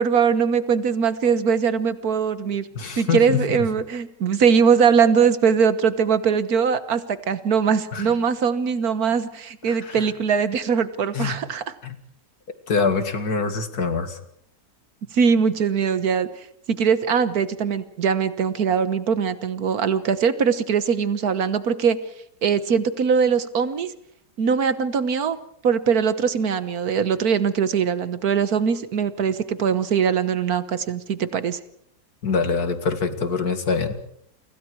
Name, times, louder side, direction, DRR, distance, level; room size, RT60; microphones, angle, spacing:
voice 1, 0.0-2.7 3.0-11.6 15.1-16.3 16.7-22.0 22.4-23.9 24.4-25.4 25.6-31.6, right 6 dB, 60° right, 13 dB, 1.7 m, -21 dB
voice 2, 2.8-3.4 7.9-8.1 9.8-10.1 11.1-11.4 11.8-12.0 12.7-14.2 32.2-34.0, left 5 dB, 60° left, 9 dB, 2.5 m, -24 dB
29.5 x 25.0 x 4.7 m, 0.71 s
omnidirectional pair, 1.8 m